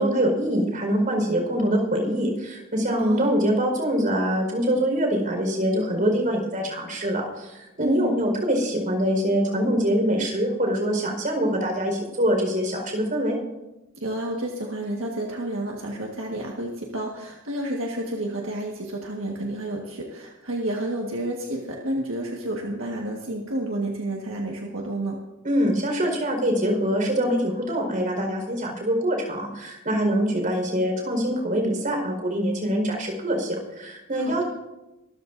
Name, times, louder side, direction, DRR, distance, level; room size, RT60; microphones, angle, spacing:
voice 1, 0.0-13.4 25.4-34.4, equal, 45° right, 2 dB, 4.6 m, -24 dB
voice 2, 3.0-3.4 7.8-8.3 14.0-25.2 34.2-34.4, right 1 dB, 75° right, -1 dB, 1.6 m, -30 dB
24.0 x 14.0 x 2.6 m, 0.97 s
head